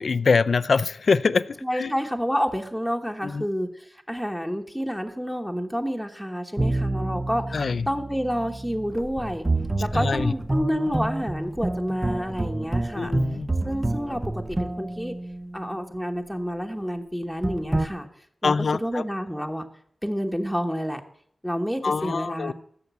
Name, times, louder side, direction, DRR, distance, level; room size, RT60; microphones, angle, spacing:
voice 1, 0.0-1.9 3.2-3.5 7.5-7.9 9.9-10.3 13.0-13.5 18.4-19.0 21.8-22.5, left 4 dB, 75° left, 15 dB, 0.5 m, -24 dB
voice 2, 1.6-9.5 9.8-13.1 13.6-15.1 15.5-18.1 18.4-18.5 18.8-19.7 20.0-21.0 21.4-22.5, equal, ahead, 3 dB, 1.2 m, -29 dB
sound 1, 6.6-16.0 17.4-17.9, right 2 dB, 25° right, 0.7 m, -28 dB
15.0 x 6.7 x 8.2 m, 0.66 s
wide cardioid pair, 105°, 0 cm